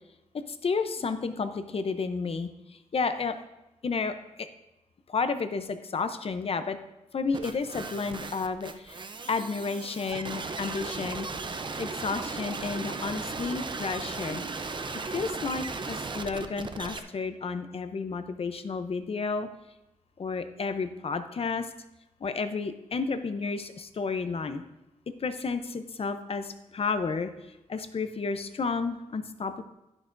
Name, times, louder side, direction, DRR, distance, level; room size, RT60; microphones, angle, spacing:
voice 1, 0.3-3.4 3.8-4.5 5.1-6.8 7.1-14.4 15.1-19.5 20.2-21.7 22.2-24.6 25.1-29.6, left 4 dB, 45° left, 10 dB, 0.6 m, -32 dB
sound 1, 7.3-17.0, right 4 dB, 35° right, 0.6 m, -36 dB
11.0 x 10.5 x 2.6 m, 0.97 s
wide cardioid pair, 140°, 13 cm